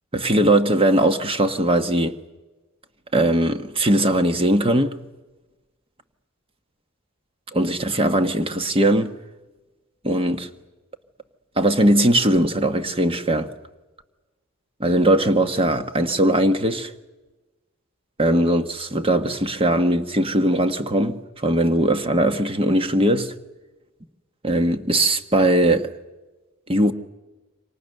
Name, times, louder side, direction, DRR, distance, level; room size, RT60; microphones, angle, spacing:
voice 1, 0.1-2.2 3.1-5.0 7.5-9.1 10.0-10.5 11.6-13.5 14.8-16.9 18.2-23.4 24.4-25.9 26.7-26.9, right 1 dB, 25° right, 1.3 m, -20 dB
28.5 x 25.5 x 6.7 m
head